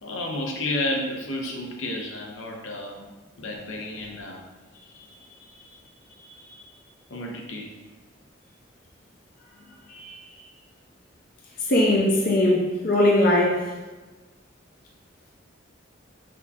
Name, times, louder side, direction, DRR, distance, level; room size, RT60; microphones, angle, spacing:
voice 1, 0.0-3.0 3.4-4.4 7.1-7.7, left 1 dB, 85° left, 0 dB, 0.7 m, -31 dB
voice 2, 11.7-13.7, left 1 dB, 45° left, -2 dB, 0.5 m, -20 dB
6.0 x 2.8 x 2.3 m, 1.2 s
head